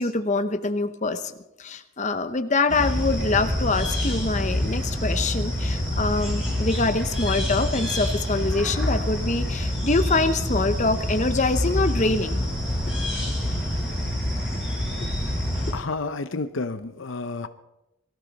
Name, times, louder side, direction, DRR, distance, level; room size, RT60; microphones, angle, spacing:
voice 1, 0.0-1.3 1.6-12.4, left 3 dB, 35° left, 8 dB, 0.8 m, -25 dB
sound 1, 2.7-15.7, left 1 dB, ahead, 6.4 m, -26 dB
voice 2, 15.7-17.5, left 3 dB, 65° left, 11 dB, 0.7 m, -30 dB
22.5 x 13.5 x 4.1 m, 0.92 s
head